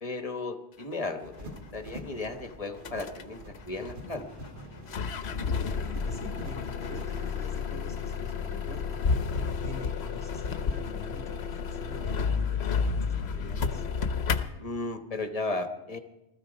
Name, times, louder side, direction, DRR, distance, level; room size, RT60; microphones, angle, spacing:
voice 1, 0.0-4.3 14.6-16.0, left 2 dB, 35° left, 7 dB, 1.1 m, -35 dB
sound 1, 1.2-7.4, equal, 45° right, 1.9 m, -46 dB
sound 2, 1.6-1.7 2.2-2.3 2.7-3.3 3.5-4.6 4.9-14.4, left 5 dB, 65° left, 1.1 m, -31 dB
Motorcycle, 2.6-8.4, equal, 25° right, 4.0 m, -55 dB
voice 2, 5.7-9.0 9.6-13.8, equal, 5° left, 3 dB, 2.0 m, -46 dB
19.5 x 13.5 x 5.2 m, 0.97 s
omnidirectional pair, 1.2 m